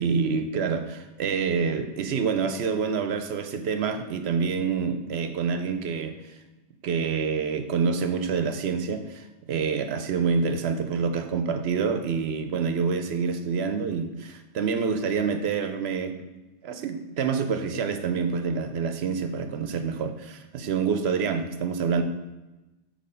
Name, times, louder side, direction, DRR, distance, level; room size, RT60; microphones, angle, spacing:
voice 1, 0.0-6.1 6.8-16.2 16.6-22.0, right 5 dB, 65° right, 7 dB, 0.8 m, -27 dB
8.3 x 2.9 x 5.5 m, 1.1 s
omnidirectional pair, 1.2 m